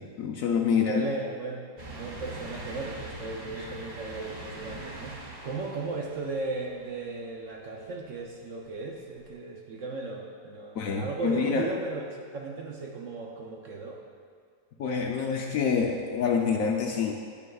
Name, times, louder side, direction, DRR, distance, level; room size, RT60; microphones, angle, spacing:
voice 1, 0.0-1.0 3.6-3.7 10.7-11.7 14.8-17.1, left 6 dB, 70° left, 1 dB, 0.9 m, -27 dB
voice 2, 0.7-14.0, right 3 dB, 65° right, 0 dB, 0.8 m, -36 dB
sound 1, 1.8-7.3 7.8-7.9 9.3-9.4, right 2 dB, 30° right, 0.9 m, -42 dB
9.8 x 9.6 x 2.3 m, 2.1 s
omnidirectional pair, 1.8 m